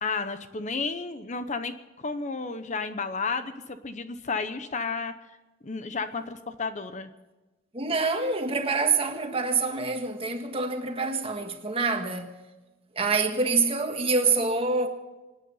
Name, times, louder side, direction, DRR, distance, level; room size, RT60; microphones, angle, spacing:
voice 1, 0.0-5.1 5.6-7.1, left 4 dB, 40° left, 0.8 m, -32 dB
voice 2, 7.7-12.4 13.0-14.9, right 4 dB, 30° right, 1.6 m, -26 dB
25.0 x 9.5 x 5.6 m
head